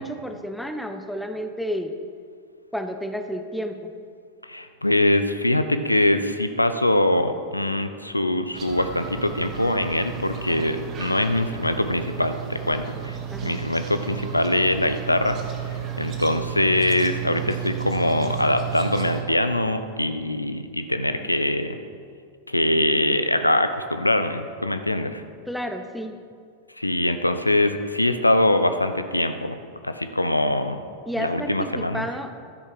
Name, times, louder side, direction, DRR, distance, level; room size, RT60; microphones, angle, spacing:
voice 1, 0.0-1.9 2.7-3.9 13.3-13.6 25.5-26.2 31.1-32.3, equal, ahead, 6 dB, 0.7 m, -31 dB
voice 2, 4.5-13.2 13.4-15.4 16.0-21.8 22.5-25.2 26.8-29.6 29.8-30.8 31.2-32.1, left 1 dB, 85° left, 9 dB, 0.6 m, -23 dB
sound 1, 8.5-19.2, right 9 dB, 30° right, 1.7 m, -33 dB
12.5 x 9.8 x 5.0 m, 2.2 s
figure-of-eight pair, 90°, 0 cm